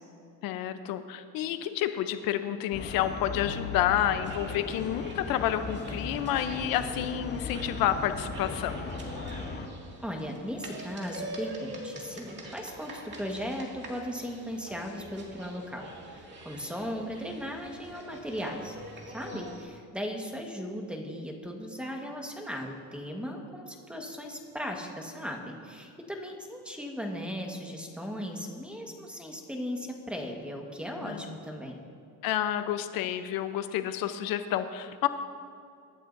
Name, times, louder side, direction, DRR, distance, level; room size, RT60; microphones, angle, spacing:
voice 1, 0.4-8.9 19.3-19.4 31.0-31.2 32.2-35.1, left 11 dB, 70° left, 10 dB, 0.8 m, -29 dB
sound 1, 2.7-9.7, left 4 dB, 30° left, 1.1 m, -38 dB
sound 2, 4.2-19.7, right 1 dB, 30° right, 2.2 m, -45 dB
voice 2, 10.0-18.7 19.1-31.8, equal, 5° right, 1 dB, 1.4 m, -37 dB
24.0 x 11.5 x 2.7 m, 2.4 s
cardioid pair, 145°, 36 cm